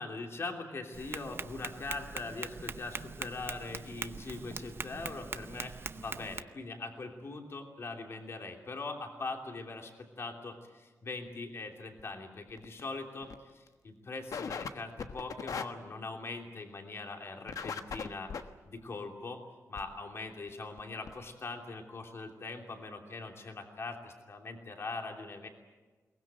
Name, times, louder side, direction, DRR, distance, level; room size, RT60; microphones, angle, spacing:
voice 1, 0.0-18.3 18.6-19.4 19.7-25.5, left 3 dB, 50° left, 3 dB, 3.0 m, -41 dB
Tap, 0.9-6.4, right 5 dB, 45° right, 0.7 m, -42 dB
sound 1, 12.0-12.1 12.5-12.8 13.2-13.4 13.7-13.8 14.3-14.7 15.0-15.6 17.5-18.4 19.8-19.9 20.5-20.6 20.8-20.9 21.1-21.2, left 6 dB, 90° left, 1.3 m, -38 dB
22.5 x 19.5 x 8.9 m, 1.3 s
wide cardioid pair, 140°, 6 cm